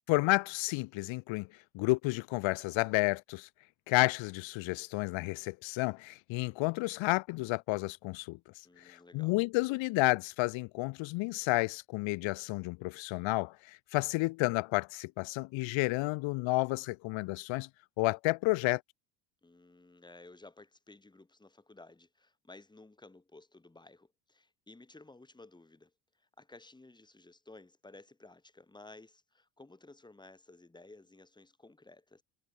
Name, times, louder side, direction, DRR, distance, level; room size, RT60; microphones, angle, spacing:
voice 1, 0.1-1.5 1.7-3.5 3.9-8.4 8.8-17.7 18.0-18.8, left 23 dB, 65° left, 1.3 m, -31 dB
voice 2, 8.6-9.4 19.4-32.2, left 2 dB, 10° left, 2.9 m, -55 dB
cardioid pair, 115°, 49 cm